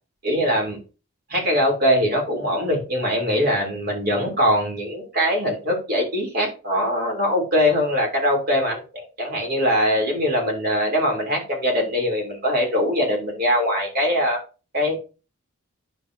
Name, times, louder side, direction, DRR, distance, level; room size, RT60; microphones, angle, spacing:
voice 1, 0.2-0.8 1.3-14.4 14.7-15.0, equal, 45° right, 0 dB, 3.1 m, -22 dB
9.5 x 6.3 x 2.7 m, 0.32 s
head